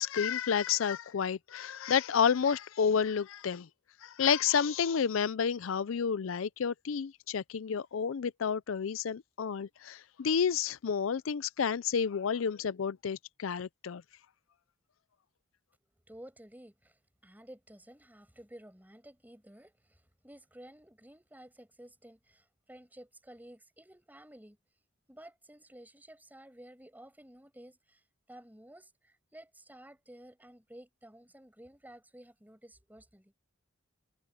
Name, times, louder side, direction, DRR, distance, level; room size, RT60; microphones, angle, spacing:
voice 1, 0.0-3.7 4.0-14.0, left 7 dB, 80° left, 0.5 m, -30 dB
voice 2, 16.1-24.6 25.1-28.0 28.3-33.3, right 1 dB, 10° right, 6.6 m, -53 dB
head